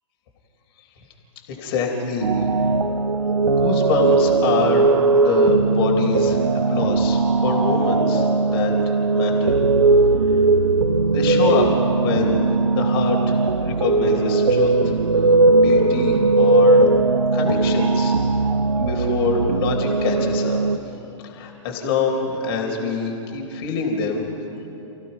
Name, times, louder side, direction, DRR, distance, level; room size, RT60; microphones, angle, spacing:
voice 1, 1.5-2.8 3.4-9.6 11.1-14.9 15.6-16.9 17.3-18.1 18.7-20.6 21.2-24.2, left 4 dB, 50° left, 0 dB, 3.8 m, -25 dB
sound 1, 2.2-20.8, right 3 dB, 80° right, 0.9 m, -18 dB
29.5 x 16.5 x 5.5 m, 2.9 s
figure-of-eight pair, 110°, 17 cm